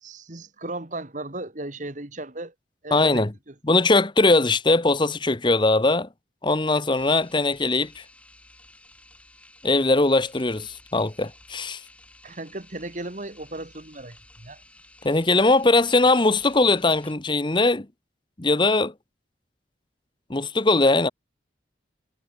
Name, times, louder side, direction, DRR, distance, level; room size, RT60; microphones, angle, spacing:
voice 1, 0.0-2.5 2.8-3.5 12.2-14.6, right 2 dB, 45° right, 2.0 m, -36 dB
voice 2, 2.9-3.3 3.7-6.1 6.4-8.0 9.6-11.8 15.0-17.9 18.4-18.9 20.3-21.1, left 2 dB, 25° left, 1.0 m, -20 dB
sound 1, 6.9-17.1, left 1 dB, 5° left, 7.8 m, -53 dB
head